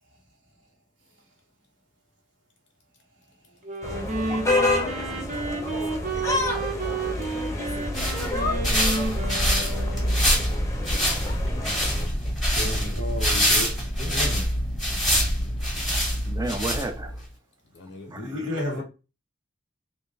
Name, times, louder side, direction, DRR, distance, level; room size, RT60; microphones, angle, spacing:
Wind instrument woodwind instrument, 3.6-10.4, right 3 dB, 45° right, 0.8 m, -31 dB
sound 1, 3.8-12.1, left 2 dB, 15° left, 0.7 m, -29 dB
voice 1, 4.8-7.2 8.4-9.0 15.3-15.6 17.7-18.8, left 2 dB, 70° left, 0.5 m, -45 dB
sound 2, 7.7-17.2, equal, ahead, 1.1 m, -25 dB
voice 2, 12.5-14.5 18.1-18.8, left 1 dB, 80° right, 1.4 m, -32 dB
voice 3, 16.3-17.3 18.0-18.8, right 2 dB, 20° right, 0.5 m, -33 dB
3.4 x 2.5 x 3.1 m
head